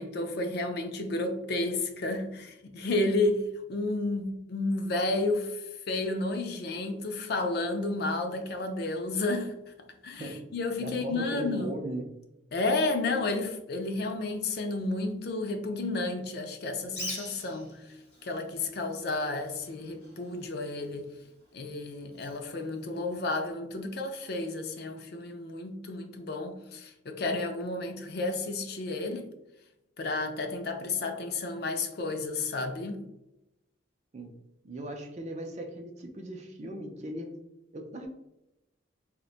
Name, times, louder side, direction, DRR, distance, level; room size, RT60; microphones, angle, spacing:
voice 1, 0.0-3.4 3.7-9.7 10.0-11.7 12.5-18.0 18.2-21.1 21.5-29.3 30.0-33.0, left 2 dB, 55° left, 5 dB, 0.4 m, -31 dB
voice 2, 10.2-10.5 10.8-12.1 34.1-34.4 34.6-37.4 37.7-38.1, right 1 dB, 35° right, 3 dB, 0.4 m, -38 dB
Bird, 16.8-23.5, left 1 dB, 35° left, 1.1 m, -46 dB
4.0 x 2.1 x 2.4 m, 0.92 s
head